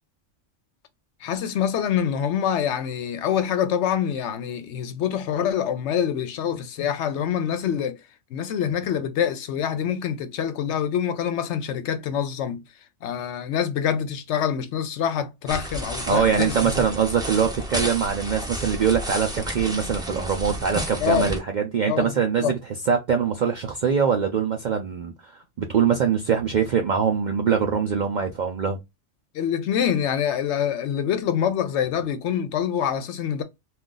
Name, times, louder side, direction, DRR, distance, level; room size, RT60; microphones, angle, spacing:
voice 1, 1.2-8.0 8.3-12.6 13.0-16.7 21.0-21.3 21.9-22.5 29.3-33.4, left 8 dB, 70° left, 0.8 m, -25 dB
sound 1, 15.5-21.4, equal, 5° right, 0.4 m, -32 dB
voice 2, 16.1-22.6 22.9-28.8, right 7 dB, 65° right, 0.4 m, -23 dB
2.4 x 2.3 x 3.7 m
omnidirectional pair, 1.3 m